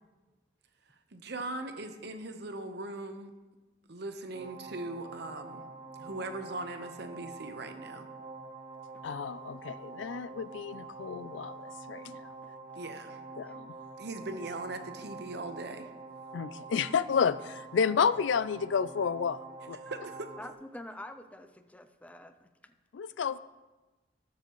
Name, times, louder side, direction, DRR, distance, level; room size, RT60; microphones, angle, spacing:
voice 1, 1.1-3.3 3.9-5.7 6.0-8.1 12.8-13.2 14.0-15.9 19.8-20.3, right 2 dB, 60° right, 7 dB, 1.0 m, -40 dB
sound 1, 4.3-20.5, right 3 dB, 40° right, 0.6 m, -46 dB
voice 2, 9.0-12.3 13.4-13.7 16.3-19.8 22.9-23.4, left 6 dB, 80° left, 16 dB, 0.4 m, -31 dB
voice 3, 20.4-22.7, left 1 dB, 10° left, 8 dB, 0.5 m, -47 dB
19.5 x 6.8 x 3.1 m, 1.2 s
head